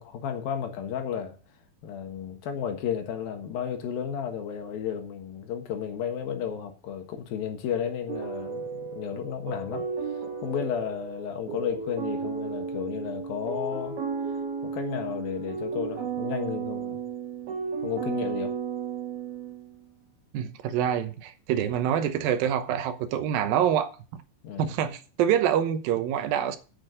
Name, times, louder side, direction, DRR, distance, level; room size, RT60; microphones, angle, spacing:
voice 1, 0.0-1.4 1.8-9.9 10.4-14.0 14.6-17.0 17.8-18.6 24.4-24.7, left 8 dB, 85° left, 3.3 m, -33 dB
sound 1, 8.1-19.8, right 6 dB, 50° right, 2.1 m, -34 dB
voice 2, 20.3-24.2 24.6-26.6, right 9 dB, 85° right, 2.7 m, -26 dB
8.6 x 6.6 x 7.5 m
omnidirectional pair, 4.1 m